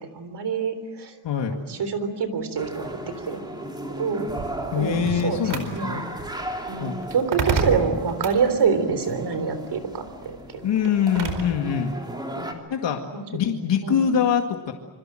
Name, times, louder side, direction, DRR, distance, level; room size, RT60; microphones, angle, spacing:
voice 1, 0.1-1.2 1.5-3.4 4.0-4.3 4.7-5.4 5.7-6.0 6.7-10.4 12.4-12.6 13.1-13.2 13.8-14.1, right 5 dB, 70° right, 10 dB, 3.7 m, -26 dB
voice 2, 1.2-1.6 4.7-6.1 6.8-7.0 10.6-11.9 12.7-13.0 13.3-14.7, left 8 dB, 85° left, 3 dB, 2.1 m, -24 dB
sound 1, 2.6-12.5, right 1 dB, 10° right, 3.1 m, -36 dB
sound 2, 4.3-11.6, right 4 dB, 90° right, 4.6 m, -32 dB
27.0 x 25.5 x 7.7 m, 1.1 s
wide cardioid pair, 180°, 42 cm